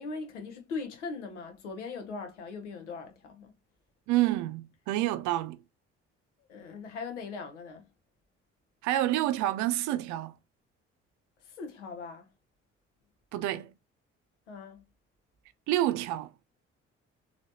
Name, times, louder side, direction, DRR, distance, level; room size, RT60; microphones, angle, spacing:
voice 1, 0.0-3.5 6.5-7.8 11.6-12.3 14.5-14.8, left 4 dB, 80° left, 0.8 m, -40 dB
voice 2, 4.1-5.6 8.8-10.3 13.3-13.7 15.7-16.3, right 14 dB, 55° right, 0.5 m, -28 dB
4.1 x 2.8 x 2.5 m
figure-of-eight pair, 45°, 35 cm